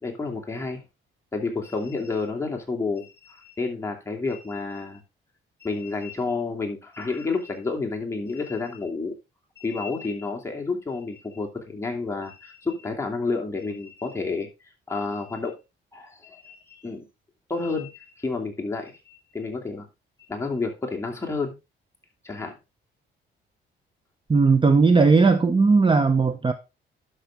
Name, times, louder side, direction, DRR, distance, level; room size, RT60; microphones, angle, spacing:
voice 1, 0.0-0.8 1.3-5.0 5.6-9.1 9.6-14.5 14.9-15.6 15.9-17.1 17.5-19.9 20.3-21.5 22.2-22.6, left 3 dB, 15° left, 2.8 m, -30 dB
voice 2, 24.3-26.5, right 4 dB, 25° right, 0.8 m, -17 dB
11.5 x 6.1 x 3.6 m
cardioid pair, 105°, 21 cm